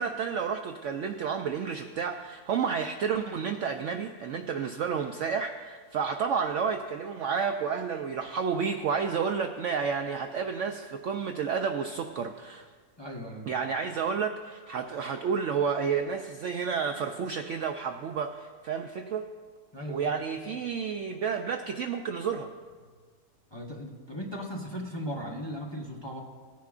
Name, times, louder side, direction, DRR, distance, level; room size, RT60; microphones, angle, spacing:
voice 1, 0.0-12.7 13.5-19.2 19.9-22.5, right 6 dB, 70° right, 5 dB, 0.7 m, -31 dB
voice 2, 13.0-13.5 19.7-20.1 20.4-20.6 23.5-26.2, equal, 20° left, -3 dB, 0.9 m, -37 dB
17.5 x 10.0 x 2.4 m, 1.5 s
omnidirectional pair, 1.7 m